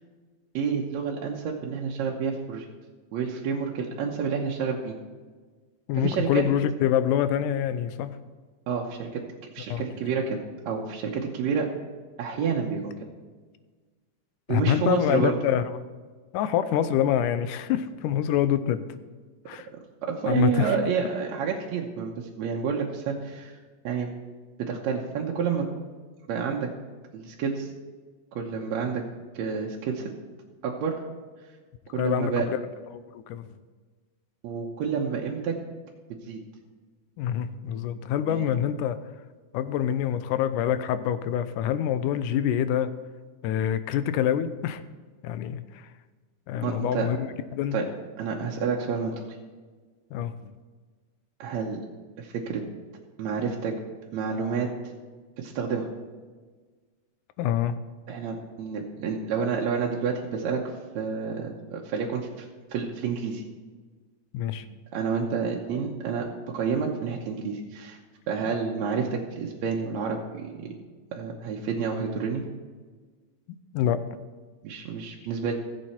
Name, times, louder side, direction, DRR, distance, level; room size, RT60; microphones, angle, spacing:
voice 1, 0.5-2.7 3.1-5.0 6.0-6.4 8.7-9.2 9.5-11.7 12.2-13.0 14.5-15.4 20.0-23.6 23.8-24.1 24.6-25.7 26.3-26.7 27.1-27.7 28.3-29.0 29.3-30.1 30.6-31.0 31.9-32.5 34.4-35.6 36.3-36.4 38.3-38.5 46.6-47.1 47.7-47.8 48.2-49.4 51.4-51.9 52.2-52.6 53.2-53.7 54.1-54.7 55.4-55.9 58.1-62.5 62.7-63.4 64.9-66.3 66.5-68.0 68.3-70.7 71.1-72.4 74.6-75.5, right 6 dB, 70° right, -1 dB, 2.1 m, -29 dB
voice 2, 5.9-8.1 9.7-9.8 14.5-15.8 16.3-18.9 19.5-19.7 20.3-20.8 32.0-32.6 32.9-33.5 37.2-39.0 39.5-42.9 43.4-44.8 45.2-45.9 46.5-47.3 47.5-47.8 50.1-50.3 57.4-57.7 64.3-64.7 73.7-74.0, left 10 dB, 85° left, 12 dB, 2.2 m, -26 dB
15.0 x 7.7 x 4.3 m, 1.4 s
omnidirectional pair, 3.6 m